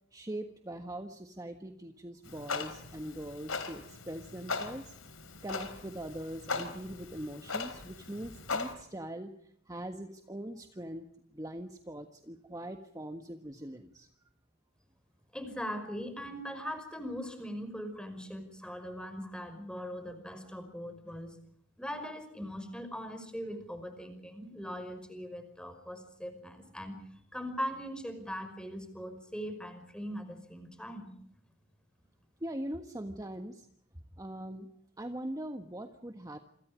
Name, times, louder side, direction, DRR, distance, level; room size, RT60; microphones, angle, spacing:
voice 1, 0.1-4.9 5.4-14.1 32.4-33.7 34.2-34.7 35.0-36.4, right 1 dB, 20° right, 6 dB, 1.5 m, -42 dB
Clock, 2.2-8.7, left 4 dB, 80° left, 4.1 m, -39 dB
voice 2, 15.3-21.4 21.8-27.0 27.3-31.1, equal, 5° left, 8 dB, 5.5 m, -40 dB
28.0 x 26.5 x 5.2 m, 0.69 s
head